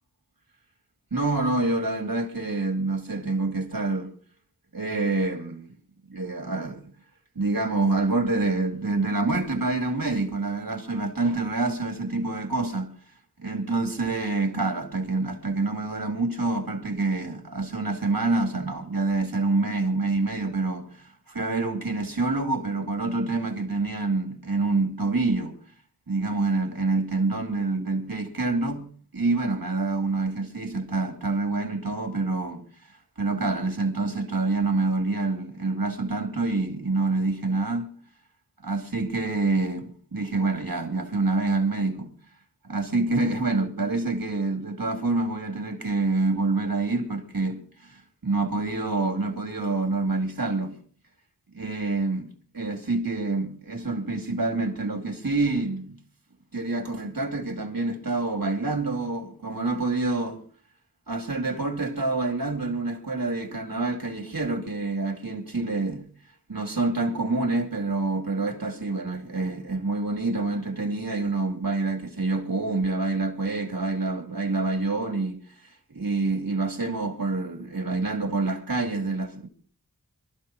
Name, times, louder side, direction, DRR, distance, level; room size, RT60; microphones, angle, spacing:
voice 1, 1.1-4.1 4.7-5.7 6.1-6.8 7.3-12.9 13.4-25.6 26.1-32.6 33.2-37.9 38.6-42.1 42.7-50.8 51.5-56.0 56.5-60.4 61.1-66.1 66.5-79.5, right 3 dB, 65° right, 2.6 m, -27 dB
25.5 x 13.5 x 3.0 m
wide cardioid pair, 45°, 37 cm